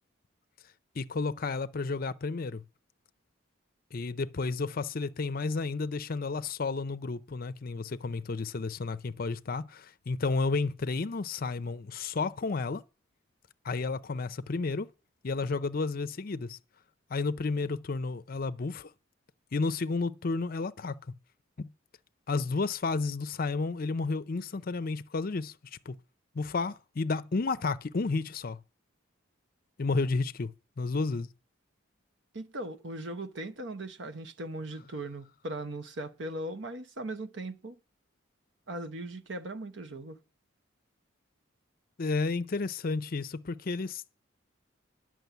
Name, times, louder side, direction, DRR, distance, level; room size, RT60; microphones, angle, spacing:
voice 1, 1.0-2.6 3.9-12.8 13.6-14.9 15.2-16.6 17.1-18.9 19.5-21.0 21.6-21.7 22.3-26.0 26.3-28.6 29.8-31.3 42.0-44.0, left 3 dB, 45° left, 0.5 m, -32 dB
voice 2, 32.3-37.8 38.7-40.2, right 1 dB, 65° right, 1.0 m, -39 dB
10.5 x 6.2 x 8.1 m
head